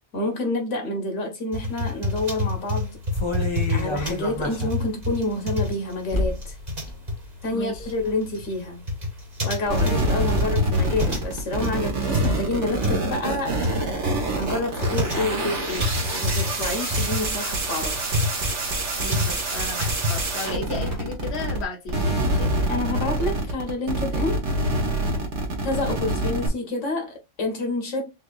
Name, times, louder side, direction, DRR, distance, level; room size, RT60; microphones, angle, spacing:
voice 1, 0.1-3.0 3.7-6.5 7.4-8.9 9.4-13.6 14.3-18.0 22.7-24.4 25.6-28.1, left 2 dB, 80° left, 1.5 m, -28 dB
sound 1, 1.5-20.7, left 2 dB, 35° right, 1.6 m, -28 dB
sound 2, 3.1-4.8 5.1-5.2 6.1-6.5 6.8-6.9 7.4-8.0 8.4-8.5, left 1 dB, 25° left, 0.8 m, -28 dB
voice 2, 7.5-7.9 19.0-22.5, left 3 dB, 60° left, 1.3 m, -34 dB
sound 3, 9.7-21.6 21.9-26.5, right 2 dB, 70° right, 1.6 m, -26 dB
6.3 x 2.6 x 2.4 m
omnidirectional pair, 1.2 m